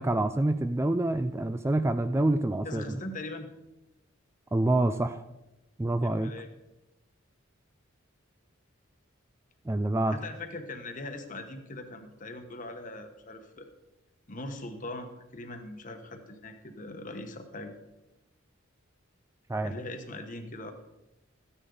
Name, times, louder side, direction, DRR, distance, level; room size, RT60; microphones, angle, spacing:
voice 1, 0.0-3.0 4.5-5.2 5.8-6.3 9.7-10.2 19.5-19.7, right 2 dB, 15° right, 10 dB, 0.3 m, -27 dB
voice 2, 2.6-3.5 6.0-6.5 10.1-13.7 14.3-17.8 19.6-20.7, left 2 dB, 40° left, 6 dB, 1.3 m, -41 dB
14.0 x 9.9 x 3.9 m, 0.96 s
head